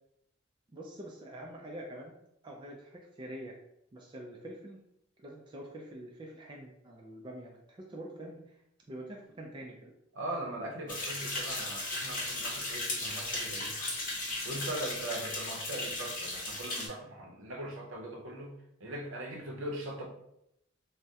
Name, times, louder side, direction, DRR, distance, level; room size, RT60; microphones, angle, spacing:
voice 1, 0.7-2.2 2.4-3.5 3.9-4.8 5.2-8.6 8.9-9.9, right 1 dB, 25° right, -1 dB, 0.3 m, -45 dB
voice 2, 10.1-13.7 14.4-18.5 18.8-20.0, right 1 dB, 70° right, 0 dB, 0.6 m, -40 dB
sound 1, 10.9-16.9, left 2 dB, 40° left, 1.0 m, -36 dB
3.4 x 2.0 x 2.7 m, 0.79 s
head